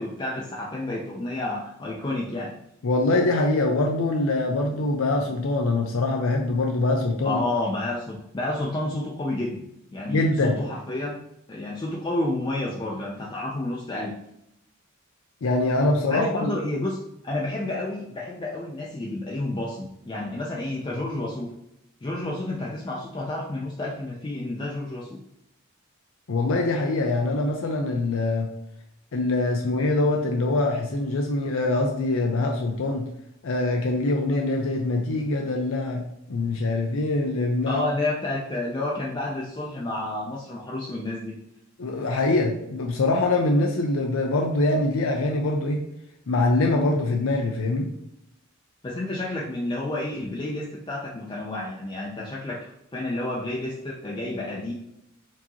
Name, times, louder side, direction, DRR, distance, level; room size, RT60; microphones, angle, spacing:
voice 1, 0.0-2.6 7.2-9.6 9.9-11.2 11.5-14.1 16.1-17.0 17.2-21.5 22.0-25.2 37.6-41.4 48.8-54.7, left 2 dB, 25° left, -4 dB, 0.4 m, -30 dB
voice 2, 2.8-7.4 10.1-10.6 15.4-16.5 26.3-28.5 29.1-33.1 33.4-37.8 41.8-45.8 46.3-47.9, left 2 dB, 80° left, 1 dB, 0.5 m, -24 dB
4.5 x 2.8 x 2.8 m, 0.81 s
head